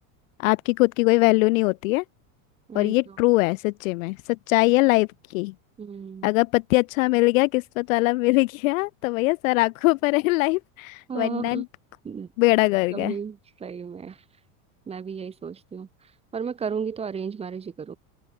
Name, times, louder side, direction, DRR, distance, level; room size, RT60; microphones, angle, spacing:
voice 1, 0.4-2.0 2.7-5.5 6.2-11.6 12.4-13.1, left 23 dB, 65° left, 0.6 m, -22 dB
voice 2, 2.7-3.2 5.8-6.3 11.1-11.6 12.0-12.3 12.9-14.2 14.9-15.9 16.3-18.0, right 6 dB, 15° right, 3.2 m, -33 dB
open air
supercardioid pair, 175°, 43 cm